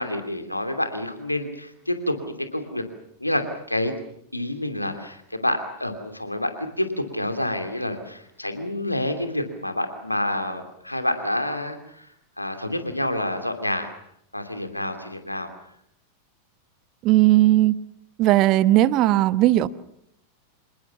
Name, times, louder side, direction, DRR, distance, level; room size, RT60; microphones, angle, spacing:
voice 1, 0.0-2.8 3.2-3.9 4.3-12.1 12.4-13.9 14.3-15.5, left 1 dB, 85° left, 2.7 m, -28 dB
voice 2, 17.0-17.8 18.2-19.7, right 15 dB, 40° right, 1.1 m, -17 dB
27.0 x 20.0 x 7.2 m
figure-of-eight pair, 90°, 0 cm